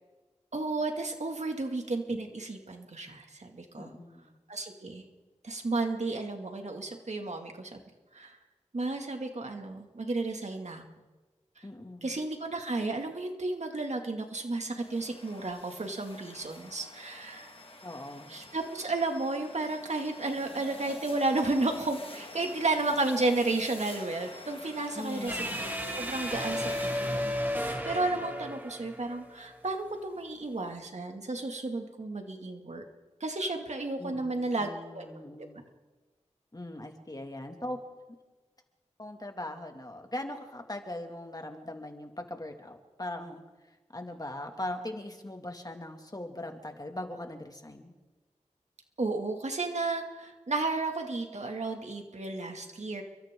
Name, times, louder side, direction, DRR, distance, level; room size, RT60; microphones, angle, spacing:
voice 1, 0.5-3.9 4.5-5.0 5.4-7.8 8.1-8.4 8.7-10.8 11.6-11.7 12.0-17.5 18.3-25.7 25.9-32.8 33.2-34.7 34.9-35.2 49.0-53.0, right 2 dB, 70° right, 3 dB, 2.5 m, -33 dB
voice 2, 3.8-4.3 11.6-12.2 17.8-18.4 24.9-25.6 34.0-35.7 36.5-37.8 39.0-43.4 43.9-47.9, left 1 dB, 30° left, 4 dB, 2.4 m, -40 dB
sound 1, 14.7-27.9, left 2 dB, 50° left, 2.0 m, -47 dB
sound 2, 25.3-29.6, equal, 15° right, 2.7 m, -34 dB
29.5 x 23.5 x 3.9 m, 1.2 s
wide cardioid pair, 60°, 12 cm